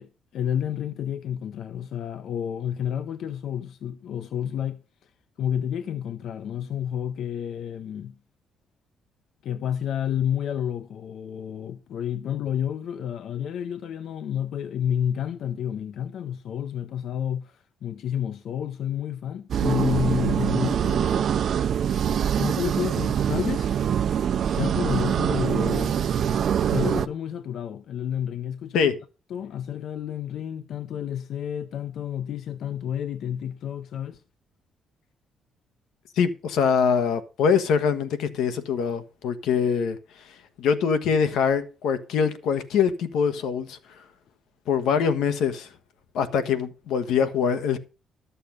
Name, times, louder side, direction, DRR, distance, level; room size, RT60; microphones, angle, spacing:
voice 1, 0.0-5.1 5.4-8.2 9.4-21.3 22.4-23.7 24.4-26.0 26.7-28.9 29.3-34.2, left 9 dB, 55° left, 0.5 m, -30 dB
sound 1, 19.5-27.1, right 8 dB, 45° right, 0.4 m, -24 dB
voice 2, 36.2-40.0 40.6-43.8 44.7-45.7 46.1-47.8, left 6 dB, 85° left, 1.1 m, -23 dB
12.0 x 6.8 x 5.2 m
cardioid pair, 170°, 0 cm